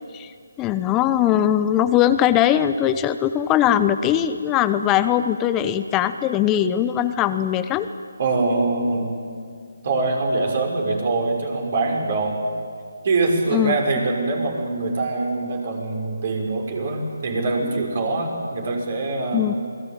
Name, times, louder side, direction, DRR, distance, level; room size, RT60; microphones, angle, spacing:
voice 1, 0.6-7.9 13.5-13.7 19.3-19.5, left 11 dB, 15° left, 12 dB, 0.8 m, -20 dB
voice 2, 8.2-9.2 9.8-12.4 13.0-19.5, right 3 dB, 45° right, 1 dB, 5.9 m, -23 dB
28.0 x 20.0 x 8.9 m, 2.2 s
figure-of-eight pair, 150°, 0 cm